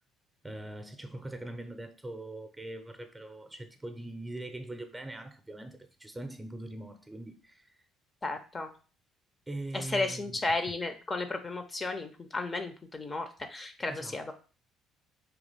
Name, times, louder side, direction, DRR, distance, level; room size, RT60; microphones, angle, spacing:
voice 1, 0.4-7.8 9.5-10.4 13.9-14.3, right 1 dB, 15° right, 0.7 m, -42 dB
voice 2, 8.2-8.7 9.7-14.3, left 2 dB, 25° left, 0.6 m, -34 dB
3.5 x 2.9 x 4.0 m
figure-of-eight pair, 50°, 0 cm